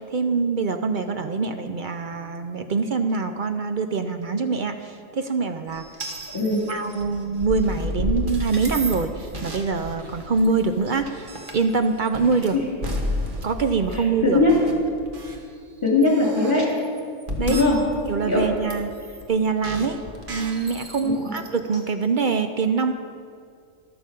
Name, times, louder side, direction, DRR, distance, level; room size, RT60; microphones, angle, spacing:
voice 1, 0.0-5.8 6.7-12.6 13.4-14.4 17.4-17.6 18.1-18.9 19.3-20.0 20.3-22.9, right 4 dB, 60° right, 7 dB, 0.5 m, -24 dB
sound 1, 5.7-15.4 15.9-18.1 18.4-19.3 19.6-21.8, left 1 dB, 35° right, 1.4 m, -32 dB
voice 2, 6.3-6.7 12.5-12.6 13.9-14.6 15.8-16.7 17.5-17.8 18.3-18.4 21.0-21.3, left 3 dB, 20° left, -5 dB, 3.3 m, -20 dB
12.0 x 9.1 x 6.7 m, 2.2 s
omnidirectional pair, 1.5 m